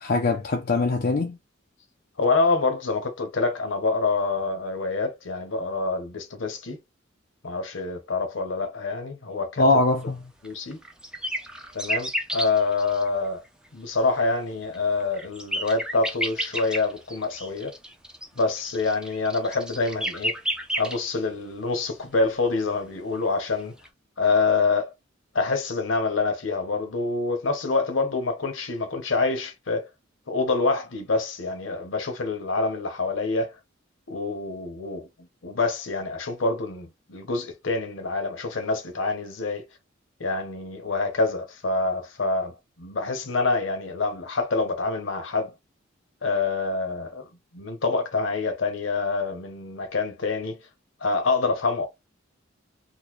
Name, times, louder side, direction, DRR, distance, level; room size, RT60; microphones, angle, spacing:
voice 1, 0.0-1.4 9.6-10.2, left 3 dB, 50° left, 0.5 m, -22 dB
voice 2, 2.2-6.8 7.4-9.6 10.4-10.8 11.7-13.4 13.7-17.8 18.4-20.4 20.8-23.7 24.2-24.9 25.3-29.9 30.3-33.6 34.1-35.1 35.4-39.6 40.2-45.5 46.2-50.6 51.0-51.9, left 3 dB, 70° left, 0.9 m, -26 dB
sound 1, 10.4-13.1 14.7-21.0 23.8-23.9, equal, 5° right, 0.6 m, -31 dB
3.9 x 2.2 x 3.0 m
head